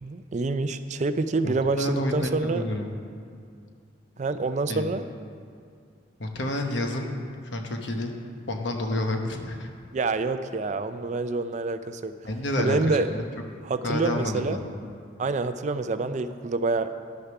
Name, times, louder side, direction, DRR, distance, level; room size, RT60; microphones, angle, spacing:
voice 1, 0.0-2.6 4.2-5.1 9.9-12.2 12.6-13.1 13.6-14.6 15.2-16.9, right 3 dB, 40° right, 11 dB, 0.4 m, -27 dB
voice 2, 1.4-2.9 4.7-4.9 6.2-7.1 7.4-8.2 8.5-9.7 12.2-13.1 13.8-14.9, left 1 dB, 70° left, 3 dB, 1.0 m, -29 dB
11.0 x 6.5 x 5.9 m, 2.3 s
head